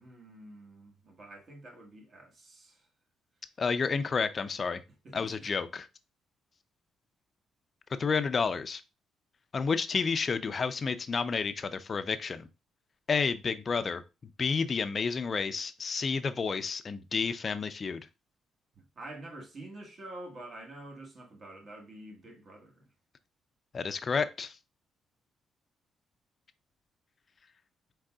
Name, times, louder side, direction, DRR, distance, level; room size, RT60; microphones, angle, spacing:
voice 1, 0.0-2.9 5.0-5.3 18.7-22.9, right 1 dB, 50° right, 1.3 m, -47 dB
voice 2, 3.6-4.8 5.1-5.9 8.0-8.8 9.5-12.5 13.1-14.0 14.4-18.1 23.7-24.6, left 5 dB, 40° left, 0.4 m, -30 dB
4.7 x 3.7 x 2.3 m
cardioid pair, 90°, 0 cm